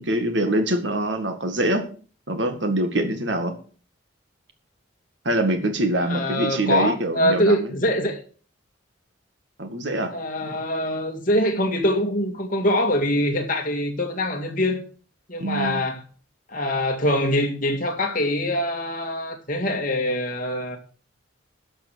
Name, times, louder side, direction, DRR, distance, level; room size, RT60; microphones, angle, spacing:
voice 1, 0.0-1.9 2.3-3.5 5.3-7.7 9.6-10.1 10.5-10.6 15.4-15.9, right 1 dB, 65° right, 2.0 m, -24 dB
voice 2, 6.0-8.2 10.1-14.8 15.3-16.0 16.5-20.8, left 1 dB, 45° left, 2.1 m, -24 dB
12.5 x 6.0 x 6.3 m
head